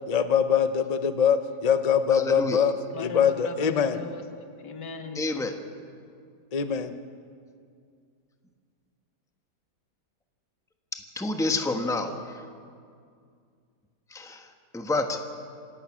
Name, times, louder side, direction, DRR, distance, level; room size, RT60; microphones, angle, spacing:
voice 1, 0.1-4.0 6.5-6.9, left 7 dB, 45° left, 10 dB, 0.5 m, -23 dB
voice 2, 2.1-2.7 5.1-5.5 11.1-12.4 14.1-14.5 14.7-15.2, left 2 dB, ahead, 5 dB, 1.0 m, -29 dB
voice 3, 2.9-5.3, left 4 dB, 80° left, 6 dB, 2.1 m, -39 dB
27.5 x 16.5 x 6.2 m, 2.2 s
omnidirectional pair, 1.8 m